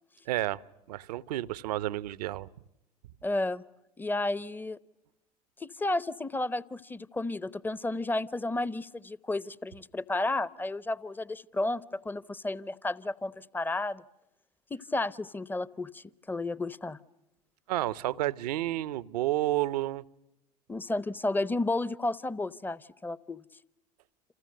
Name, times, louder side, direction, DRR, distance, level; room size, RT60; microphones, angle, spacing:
voice 1, 0.3-0.6 0.9-2.5 17.7-20.0, right 15 dB, 65° right, 18 dB, 0.9 m, -30 dB
voice 2, 3.2-3.6 4.0-4.8 5.6-14.0 14.7-17.0 20.7-23.4, left 2 dB, 10° left, 19 dB, 0.9 m, -32 dB
30.0 x 28.0 x 6.6 m, 0.87 s
figure-of-eight pair, 80°, 21 cm